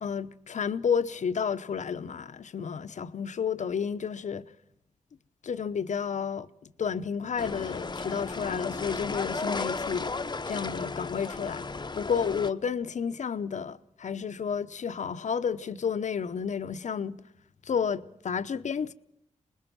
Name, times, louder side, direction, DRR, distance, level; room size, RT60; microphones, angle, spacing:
voice 1, 0.0-4.5 5.4-6.5 6.8-10.1 10.5-11.7 11.9-17.2 17.6-18.9, left 6 dB, 70° left, 0.9 m, -31 dB
sound 1, 7.4-12.5, left 3 dB, 35° left, 0.9 m, -34 dB
25.0 x 20.5 x 6.1 m
cardioid pair, 60°, 13 cm